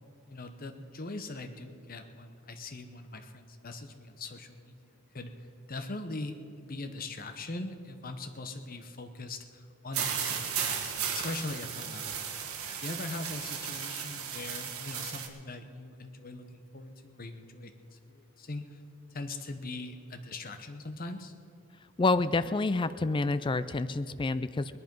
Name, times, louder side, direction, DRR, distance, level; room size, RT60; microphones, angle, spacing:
voice 1, 0.3-12.3 12.8-18.8 19.1-21.3, left 2 dB, 40° left, 8 dB, 0.9 m, -41 dB
sound 1, 9.9-15.3, right 7 dB, 80° right, 1.4 m, -35 dB
voice 2, 22.0-24.8, left 3 dB, 20° left, 13 dB, 0.3 m, -28 dB
20.0 x 10.5 x 5.3 m, 2.5 s
head